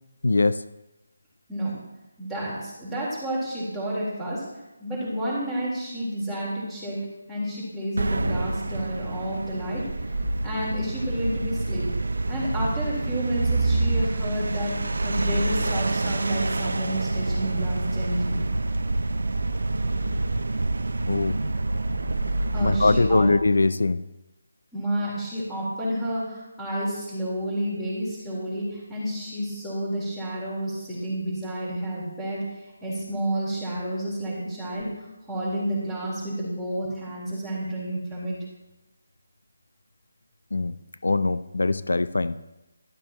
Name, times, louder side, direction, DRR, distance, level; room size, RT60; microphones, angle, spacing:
voice 1, 0.2-0.6 21.1-21.4 22.6-24.0 40.5-40.7 41.0-42.4, left 3 dB, 85° left, 14 dB, 0.5 m, -22 dB
voice 2, 2.2-4.5 4.8-9.9 10.4-11.9 12.3-18.4 22.5-23.3 24.7-32.5 32.8-38.4, right 1 dB, 5° left, -9 dB, 3.9 m, -30 dB
sound 1, 8.0-23.5, right 2 dB, 80° right, 0.6 m, -27 dB
12.5 x 12.0 x 3.0 m, 1.0 s
figure-of-eight pair, 170°, 0 cm